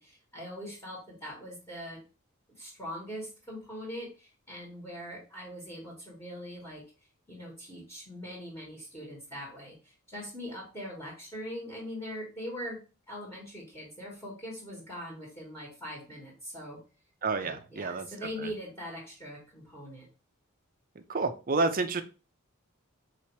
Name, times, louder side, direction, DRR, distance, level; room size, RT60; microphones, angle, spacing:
voice 1, 0.0-2.0 2.6-6.8 7.3-16.8 17.4-20.1, equal, 10° left, -4 dB, 1.5 m, -42 dB
voice 2, 17.2-18.1 21.1-22.0, right 3 dB, 40° right, 8 dB, 0.5 m, -29 dB
4.0 x 2.9 x 4.5 m, 0.33 s
head